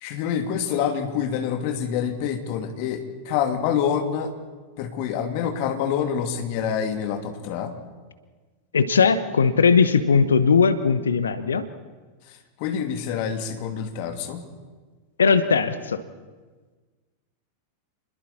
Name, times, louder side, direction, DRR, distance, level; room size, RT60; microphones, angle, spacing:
voice 1, 0.0-4.3 4.8-7.7 12.6-14.4, left 8 dB, 45° left, 5 dB, 2.6 m, -26 dB
voice 2, 8.7-11.6 15.2-16.0, left 5 dB, 70° left, 13 dB, 1.0 m, -19 dB
29.0 x 21.0 x 4.3 m, 1.4 s
figure-of-eight pair, 90°, 0 cm